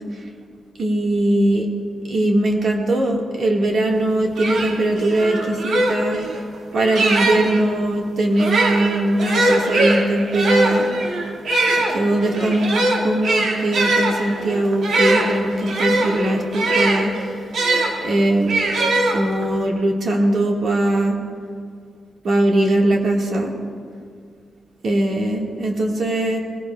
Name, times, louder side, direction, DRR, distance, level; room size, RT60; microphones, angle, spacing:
voice 1, 0.8-1.7 2.1-6.2 6.7-10.9 11.7-17.1 18.0-18.5 19.1-21.2 22.2-23.5 24.8-26.4, right 1 dB, 50° right, 0 dB, 1.6 m, -20 dB
sound 1, 4.0-4.1 4.3-7.6 8.3-17.9 18.5-19.6, right 2 dB, 70° right, 1.7 m, -21 dB
19.5 x 16.5 x 2.3 m, 2.2 s
wide cardioid pair, 180°, 0 cm